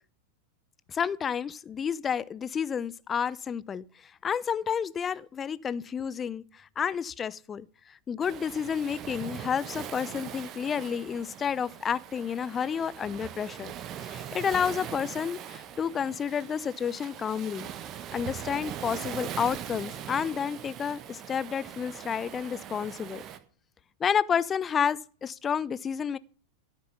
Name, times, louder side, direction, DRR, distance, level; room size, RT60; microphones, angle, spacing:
voice 1, 0.9-13.7 14.0-17.7 18.1-23.2 24.0-26.2, left 7 dB, 20° left, 0.5 m, -30 dB
Waves surf, 8.2-23.4, right 10 dB, 30° right, 1.2 m, -41 dB
13.0 x 6.7 x 6.9 m
figure-of-eight pair, 90°, 0 cm